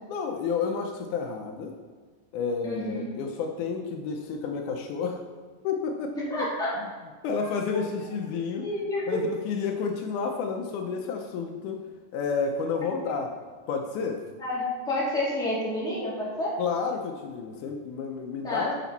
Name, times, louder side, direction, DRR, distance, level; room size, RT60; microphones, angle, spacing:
voice 1, 0.1-1.8 2.3-5.2 5.6-6.5 6.8-6.9 7.2-8.7 9.1-11.8 12.1-13.3 13.7-14.2 16.6-18.7, left 5 dB, 80° left, 4 dB, 2.1 m, -30 dB
voice 2, 2.6-3.1 6.2-6.8 7.7-7.9 8.6-9.2 14.4-16.6 18.4-18.7, left 1 dB, ahead, -8 dB, 2.2 m, -29 dB
10.5 x 5.9 x 4.1 m, 1.5 s
omnidirectional pair, 3.7 m